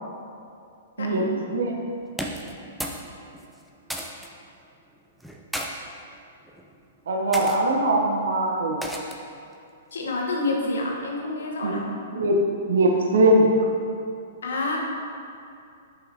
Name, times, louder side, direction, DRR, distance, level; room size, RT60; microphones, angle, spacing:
voice 1, 1.0-1.4 9.9-12.0 14.4-14.8, left 2 dB, 80° left, -1 dB, 1.1 m, -28 dB
sound 1, 2.1-3.1 3.3-4.3 5.2-5.7 6.5-6.7 7.3-7.6 8.8-9.3, equal, ahead, 0.5 m, -33 dB
voice 2, 7.1-8.8 11.6-11.7 12.1-12.4 12.7-13.5, right 1 dB, 75° right, 0 dB, 0.8 m, -21 dB
7.4 x 5.7 x 2.7 m, 2.5 s
hypercardioid pair, 120°, 0 cm